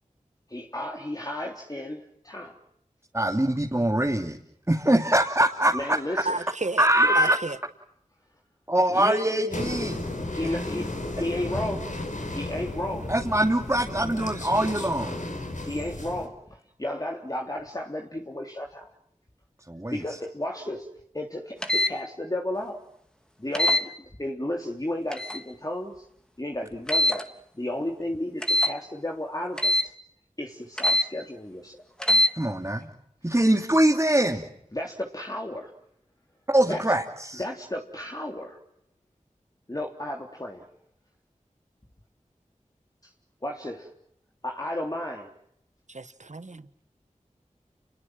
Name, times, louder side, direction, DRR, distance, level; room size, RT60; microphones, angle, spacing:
voice 1, 0.5-2.6 5.7-6.4 7.0-7.3 8.9-9.2 10.3-11.9 12.3-13.1 15.6-18.9 19.9-20.9 21.1-22.8 23.4-23.9 24.2-26.0 26.4-27.3 27.5-29.9 30.4-31.8 34.7-35.7 36.7-36.8 37.3-38.6 39.7-40.7 43.4-43.9 44.4-45.3, left 1 dB, 30° left, 3.4 m, -33 dB
voice 2, 3.1-4.4 4.7-5.8 6.8-7.4 8.7-10.0 13.1-15.2 19.7-20.0 32.4-32.9 33.2-34.4 36.5-37.4, right 1 dB, 20° right, 2.9 m, -23 dB
voice 3, 6.3-6.9 7.2-7.6 45.9-46.8, right 3 dB, 65° right, 1.6 m, -32 dB
sound 1, 9.5-16.3, left 2 dB, 70° left, 5.3 m, -34 dB
sound 2, 21.6-21.9 23.5-23.8 25.1-25.4 26.9-27.2 28.4-28.7 29.6-29.9 30.8-31.1 32.0-32.3, left 1 dB, 5° left, 3.4 m, -22 dB
30.0 x 22.0 x 7.7 m
wide cardioid pair, 45°, 13 cm